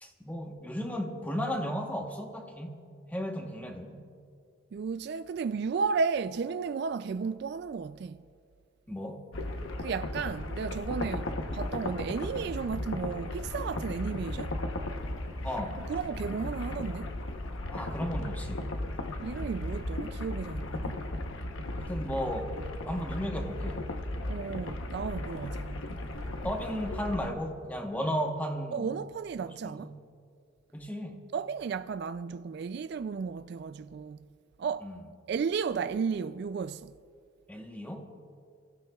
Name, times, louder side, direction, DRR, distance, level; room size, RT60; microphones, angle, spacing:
voice 1, 0.0-2.8 3.1-4.1 8.9-9.3 15.4-15.9 17.7-18.7 21.8-22.5 22.9-23.8 26.3-28.9 29.5-30.0 30.7-31.2 34.8-35.0 37.5-38.1, equal, 10° left, 1.0 m, -35 dB
voice 2, 4.7-8.2 9.8-14.6 15.9-17.2 19.2-21.0 24.3-25.8 28.7-29.9 31.3-34.2 34.6-34.9 35.3-36.9, right 5 dB, 55° right, 0.3 m, -33 dB
sound 1, 9.3-27.3, left 1 dB, 85° left, 0.9 m, -36 dB
29.5 x 15.5 x 2.3 m
head